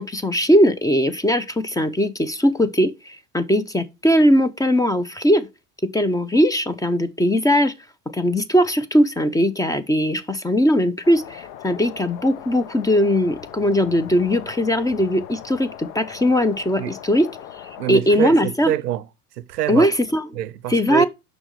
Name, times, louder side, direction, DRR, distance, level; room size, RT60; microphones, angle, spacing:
voice 1, 0.0-5.5 5.9-7.7 8.1-17.3 17.9-18.7 19.7-20.2 20.7-21.1, equal, 10° left, 0.6 m, -19 dB
sound 1, 11.0-18.0, left 11 dB, 60° left, 0.9 m, -39 dB
voice 2, 17.8-19.1 19.4-19.9 20.3-21.1, right 13 dB, 85° right, 0.6 m, -25 dB
6.2 x 5.2 x 4.7 m
hypercardioid pair, 75°, 46 cm